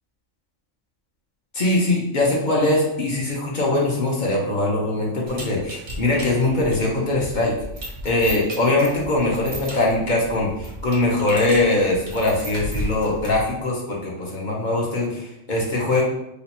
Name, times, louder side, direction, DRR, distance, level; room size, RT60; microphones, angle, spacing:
voice 1, 1.5-7.5 8.0-16.0, left 2 dB, 45° left, -3 dB, 0.8 m, -22 dB
sound 1, 5.3-13.5, right 1 dB, 45° right, 0.6 m, -35 dB
2.9 x 2.3 x 4.1 m, 0.84 s
omnidirectional pair, 1.3 m